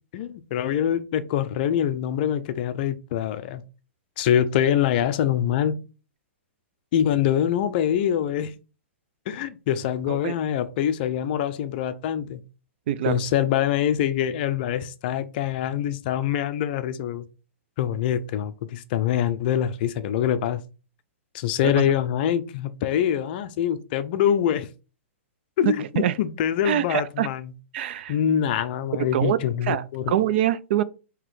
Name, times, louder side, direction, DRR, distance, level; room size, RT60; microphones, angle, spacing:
voice 1, 0.1-3.6 4.2-5.8 6.9-8.5 9.3-12.4 13.0-17.3 17.8-20.6 21.3-24.7 25.6-27.5 28.1-30.1, left 10 dB, 45° left, 0.5 m, -24 dB
voice 2, 12.9-13.2 21.6-21.8 25.7-26.1 26.6-27.3 27.7-28.1 29.1-30.8, right 11 dB, 55° right, 0.4 m, -25 dB
3.9 x 2.9 x 4.7 m
hypercardioid pair, 150°, 7 cm